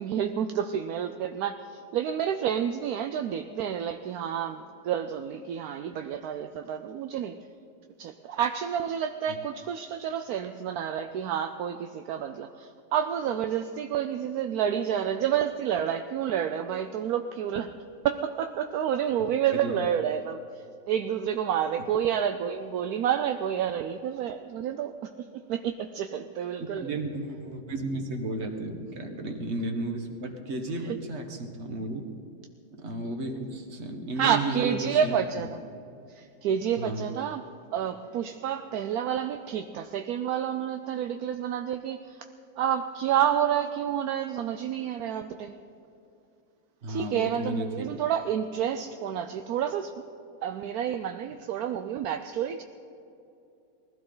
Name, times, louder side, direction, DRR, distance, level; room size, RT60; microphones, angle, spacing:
voice 1, 0.0-7.4 8.0-17.7 18.0-20.4 20.9-25.1 25.5-26.9 34.2-35.6 36.1-37.4 37.7-42.2 42.6-45.5 46.9-49.9 50.4-52.6, right 9 dB, 70° right, 7 dB, 1.0 m, -29 dB
voice 2, 26.8-32.0 32.7-35.5 36.8-37.1 46.8-48.0, right 2 dB, 40° right, 4 dB, 1.7 m, -33 dB
21.0 x 15.5 x 3.9 m, 2.7 s
omnidirectional pair, 1.9 m